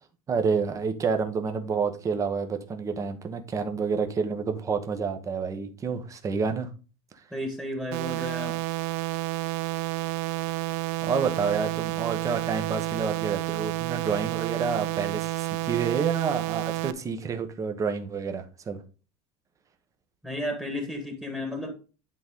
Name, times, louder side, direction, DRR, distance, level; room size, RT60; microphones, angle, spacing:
voice 1, 0.3-6.7 11.0-18.8, right 5 dB, 20° right, 1.1 m, -29 dB
voice 2, 7.3-8.6 20.2-21.7, equal, 5° right, 1.7 m, -33 dB
sound 1, 7.9-16.9, right 19 dB, 60° right, 0.5 m, -30 dB
11.0 x 3.9 x 3.7 m
cardioid pair, 155°, 15 cm